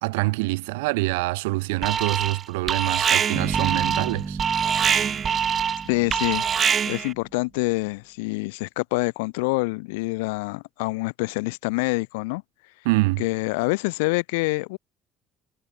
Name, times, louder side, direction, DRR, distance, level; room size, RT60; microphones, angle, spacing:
voice 1, 0.0-4.4 12.9-13.2, right 24 dB, 85° right, 1.9 m, -25 dB
Alarm, 1.8-2.4 2.7-7.1, right 8 dB, 45° right, 1.3 m, -24 dB
sound 1, 3.3-7.3, right 5 dB, 30° right, 4.5 m, -34 dB
voice 2, 5.9-6.5 6.9-12.4 13.2-14.8, left 26 dB, 85° left, 0.8 m, -26 dB
supercardioid pair, 75°, 0 cm